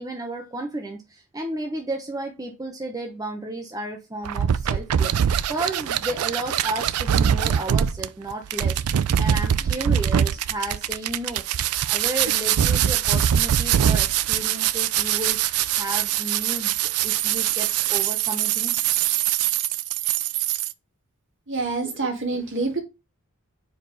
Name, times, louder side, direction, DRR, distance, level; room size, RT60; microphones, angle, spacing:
voice 1, 0.0-5.1 5.5-8.8 9.2-11.4 11.8-18.8, right 1 dB, 15° right, 0.9 m, -33 dB
sound 1, 4.2-20.7, right 10 dB, 85° right, 0.4 m, -23 dB
voice 2, 21.5-22.8, right 3 dB, 60° right, 1.9 m, -26 dB
4.8 x 4.6 x 5.2 m
head